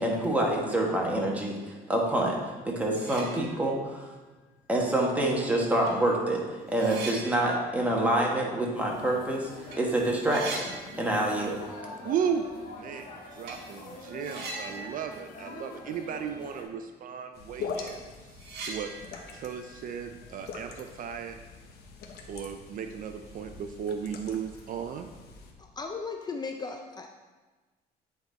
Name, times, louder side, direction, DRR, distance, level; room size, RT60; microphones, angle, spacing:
voice 1, 0.0-1.6 1.9-2.4 2.6-4.0 4.7-6.4 6.7-10.7 11.0-11.6, right 1 dB, 10° right, -2 dB, 1.4 m, -26 dB
sound 1, 2.5-2.6 2.9-3.9 4.3-4.4 5.4-5.5 5.9-9.3 9.6-9.8 10.0-11.6 11.9-12.0 13.4-13.7 14.2-16.3 16.6-16.7 17.2-17.3 17.6-20.8, right 3 dB, 80° right, 1.3 m, -42 dB
sound 2, 8.7-16.6, left 2 dB, 55° left, 1.6 m, -45 dB
voice 2, 12.0-18.1 18.6-18.9 19.3-21.4 22.3-25.1, right 7 dB, 55° right, 7 dB, 0.4 m, -35 dB
sound 3, 17.3-25.5, left 5 dB, 75° left, 1.0 m, -43 dB
voice 3, 25.6-27.1, left 4 dB, 25° left, 4 dB, 0.4 m, -36 dB
8.9 x 4.1 x 4.0 m, 1.3 s
cardioid pair, 110°, 17 cm